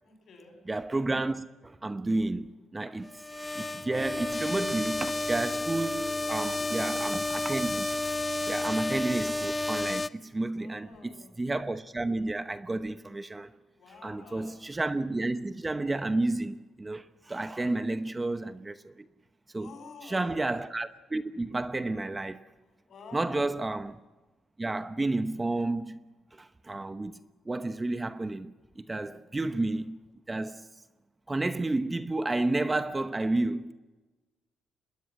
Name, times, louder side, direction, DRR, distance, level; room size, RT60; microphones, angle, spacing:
voice 1, 0.0-0.6 6.4-7.3 10.5-11.3 13.8-14.5 19.6-20.3 22.8-23.5 29.0-29.2, left 3 dB, 60° left, 7.8 m, -49 dB
voice 2, 0.7-3.2 3.6-7.9 8.5-11.1 11.4-13.5 14.0-19.1 19.5-19.7 20.0-22.4 23.1-24.0 24.6-26.0 26.3-27.2 27.5-30.0 30.3-30.7 31.3-33.7, right 2 dB, 20° right, 0.9 m, -31 dB
sound 1, 3.0-10.1, left 2 dB, 15° left, 0.7 m, -31 dB
25.0 x 20.5 x 7.6 m
cardioid pair, 90°, 0 cm